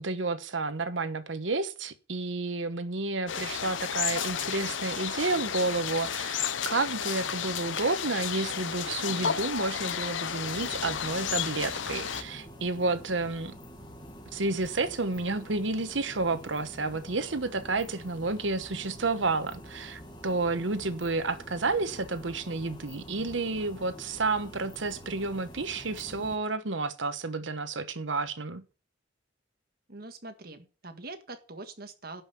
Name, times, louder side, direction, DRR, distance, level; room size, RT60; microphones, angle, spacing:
voice 1, 0.0-13.5 14.3-28.6, right 3 dB, 85° right, 1.1 m, -31 dB
sound 1, 3.3-12.2, left 8 dB, 90° left, 0.8 m, -32 dB
sound 2, 10.4-26.4, equal, 25° left, 2.0 m, -47 dB
voice 2, 29.9-32.2, right 2 dB, 55° right, 1.6 m, -43 dB
11.5 x 5.6 x 7.0 m
head